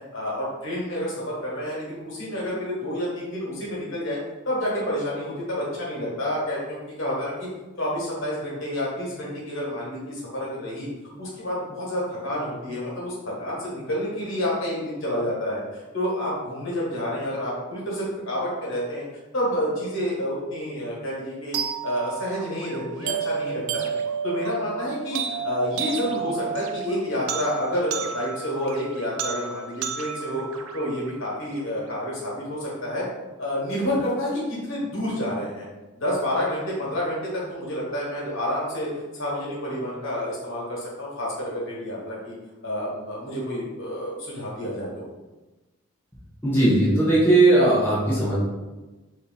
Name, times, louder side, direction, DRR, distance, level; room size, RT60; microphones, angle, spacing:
voice 1, 0.1-4.2 4.4-7.5 7.8-10.9 11.2-19.0 19.3-21.6 21.8-23.9 24.2-30.4 30.7-33.1 33.4-35.7 36.0-42.3 42.6-45.0, equal, 60° left, -5 dB, 1.4 m, -29 dB
sound 1, 21.5-31.6, right 7 dB, 70° right, 0.4 m, -32 dB
voice 2, 46.4-48.4, right 2 dB, 10° left, -8 dB, 0.7 m, -18 dB
3.4 x 2.7 x 3.9 m, 1.2 s
head